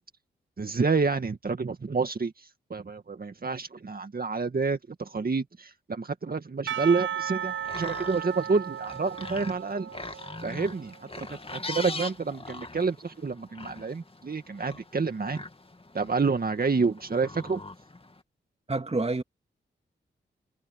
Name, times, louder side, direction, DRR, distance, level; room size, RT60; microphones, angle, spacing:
voice 1, 0.6-9.9 10.4-15.4 15.9-17.6, right 4 dB, 45° right, 2.1 m, -29 dB
Percussion / Church bell, 6.7-11.1, right 10 dB, 70° right, 0.5 m, -35 dB
sound 1, 7.4-18.2, left 2 dB, 25° left, 2.4 m, -42 dB
voice 2, 18.7-19.2, right 2 dB, 30° right, 2.5 m, -27 dB
supercardioid pair, 40°, 21 cm